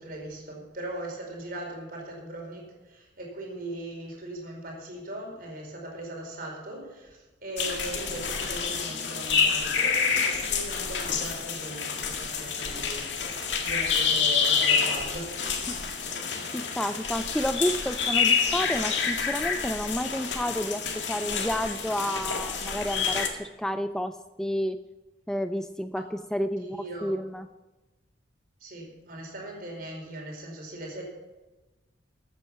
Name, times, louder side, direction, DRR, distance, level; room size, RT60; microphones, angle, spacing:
voice 1, 0.0-15.7 25.9-26.0 26.6-27.2 28.6-31.0, right 1 dB, 55° right, 0 dB, 4.6 m, -39 dB
sound 1, 7.6-23.3, left 6 dB, 80° left, 2.0 m, -28 dB
voice 2, 16.5-24.8 25.3-27.5, equal, 5° left, 10 dB, 0.3 m, -30 dB
14.5 x 9.1 x 5.8 m, 1.1 s
head